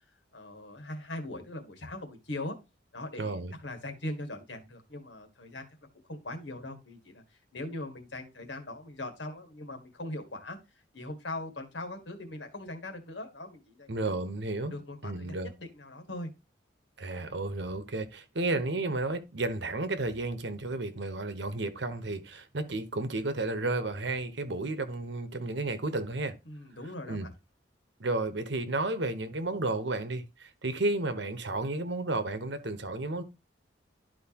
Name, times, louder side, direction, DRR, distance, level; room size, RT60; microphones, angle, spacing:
voice 1, 0.3-2.6 2.9-5.7 6.1-7.2 7.5-10.6 10.9-13.9 14.7-16.3 26.5-27.3, left 1 dB, 70° left, 1.8 m, -40 dB
voice 2, 3.2-3.5 13.9-14.7 15.0-15.5 17.0-26.4 27.1-27.3 28.0-33.2, right 2 dB, 65° right, 1.1 m, -32 dB
12.0 x 4.6 x 2.9 m
head